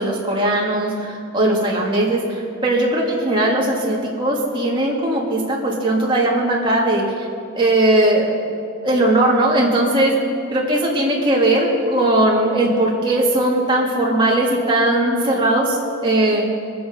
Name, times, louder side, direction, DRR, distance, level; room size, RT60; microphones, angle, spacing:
voice 1, 0.0-7.0 7.5-8.3 8.8-10.1 10.5-15.8 16.0-16.4, right 1 dB, 25° right, -3 dB, 2.3 m, -18 dB
22.0 x 7.9 x 5.2 m, 2.5 s
head